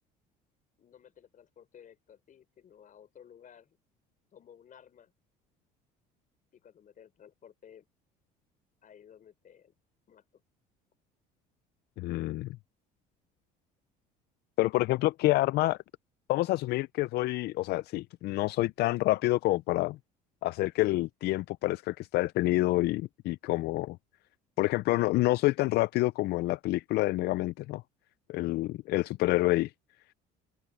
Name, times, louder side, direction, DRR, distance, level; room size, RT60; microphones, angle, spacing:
voice 1, 0.8-3.8 4.3-5.1 6.5-7.8 8.8-9.7 10.1-10.4, left 8 dB, 45° left, 4.9 m, -55 dB
voice 2, 12.0-12.5 14.6-15.8 16.3-20.0 20.4-24.0 24.6-27.8 28.3-29.7, left 18 dB, 65° left, 0.5 m, -28 dB
open air
supercardioid pair, 85°, 19 cm